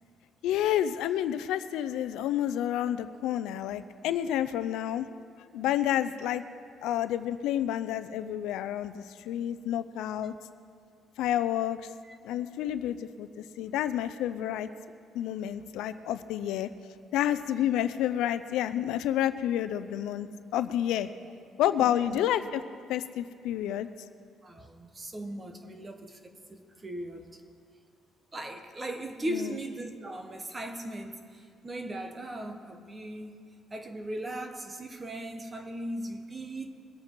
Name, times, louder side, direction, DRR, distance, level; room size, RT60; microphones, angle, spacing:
voice 1, 0.4-5.1 5.5-6.4 6.8-10.3 11.2-11.8 12.2-14.7 15.1-16.7 17.1-20.3 20.5-21.1 21.6-22.6 22.9-23.9 29.3-29.5, left 11 dB, 90° left, 0.6 m, -29 dB
voice 2, 12.0-12.4 21.8-22.2 24.4-27.2 28.3-33.5 33.7-36.7, right 1 dB, 20° right, 1.0 m, -38 dB
22.5 x 8.5 x 4.5 m
cardioid pair, 155°, 0 cm